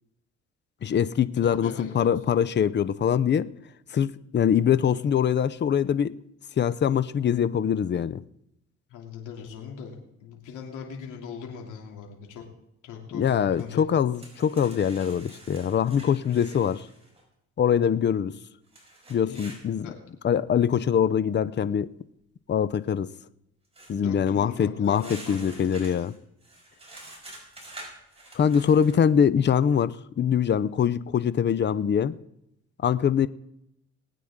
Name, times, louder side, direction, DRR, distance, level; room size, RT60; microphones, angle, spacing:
voice 1, 0.8-3.5 3.9-6.2 6.6-8.2 13.1-16.9 17.6-18.4 19.1-19.9 20.2-21.9 22.5-23.1 23.9-26.1 28.3-32.2 32.8-33.3, left 8 dB, 35° left, 0.6 m, -23 dB
voice 2, 1.4-2.1 8.9-12.4 12.8-13.8 19.3-19.6 19.8-19.9 23.9-25.9, left 7 dB, 85° left, 2.8 m, -40 dB
sound 1, 13.6-13.7 14.1-17.2 18.7-19.6 23.7-23.9 24.8-29.0, right 1 dB, 20° right, 5.1 m, -47 dB
20.0 x 9.3 x 3.7 m
cardioid pair, 90°, 30 cm